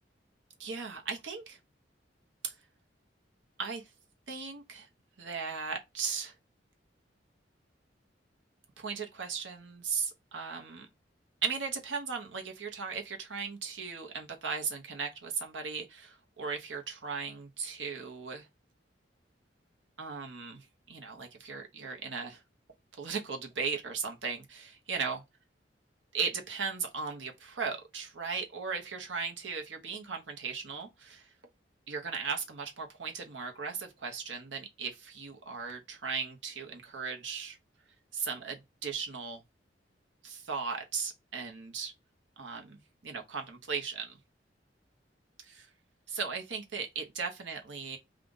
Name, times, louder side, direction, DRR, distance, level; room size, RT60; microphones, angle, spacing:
voice 1, 0.6-1.6 2.4-2.5 3.6-3.8 4.3-4.9 5.2-6.3 8.8-10.9 11.4-18.5 20.0-22.4 22.9-25.2 26.1-31.3 31.9-37.6 38.1-39.4 40.2-41.9 42.4-44.2 45.4-45.7 46.1-48.0, right 5 dB, 85° right, 1.0 m, -37 dB
3.7 x 2.5 x 3.8 m
head